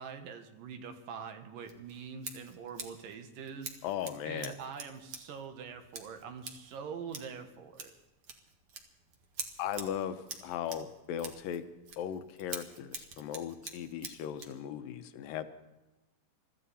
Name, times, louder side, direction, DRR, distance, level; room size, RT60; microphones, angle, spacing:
voice 1, 0.0-3.7 4.3-7.9, right 6 dB, 80° right, 7 dB, 3.0 m, -44 dB
Scissors, 1.6-14.6, right 5 dB, 50° right, 2.2 m, -47 dB
voice 2, 3.8-4.5 9.6-11.6 12.0-15.5, left 9 dB, 90° left, 9 dB, 2.7 m, -37 dB
24.0 x 14.0 x 4.2 m, 1.0 s
omnidirectional pair, 3.9 m